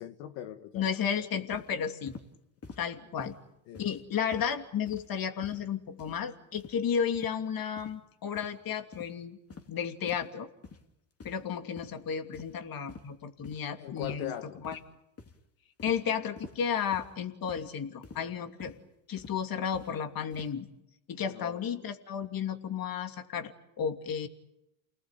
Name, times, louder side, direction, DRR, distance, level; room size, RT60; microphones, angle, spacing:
voice 1, 0.0-0.9 3.7-3.8 13.8-14.6 21.2-21.6, left 11 dB, 80° left, 8 dB, 1.8 m, -40 dB
voice 2, 0.7-2.2 2.8-3.3 3.8-9.4 9.7-10.5 11.2-14.3 14.6-14.8 15.8-18.7 19.1-20.7 21.1-24.3, left 7 dB, 45° left, 7 dB, 2.9 m, -33 dB
sound 1, 1.5-1.7 2.1-2.3 2.6-2.9 3.2-3.4 3.8-4.0 4.3-4.5 4.9-5.1 5.4-5.7 6.0-6.2 6.6-6.8 7.1-7.4 7.8-8.0 8.3-8.5 8.9-9.1 9.5-9.7 10.1-10.3 10.6-10.8 11.2-11.5 11.8-12.0 12.3-12.6 12.9-13.1 13.4-13.6 14.0-14.3 14.6-14.9 15.2-15.4 15.8-16.0 16.4-16.6 16.9-17.1 17.5-17.7 18.0-18.3 18.6-18.8 19.2-19.4 19.7-19.9 20.3-20.5, left 5 dB, 30° left, 3.0 m, -47 dB
29.0 x 20.0 x 9.1 m, 0.86 s
supercardioid pair, 95°, 49 cm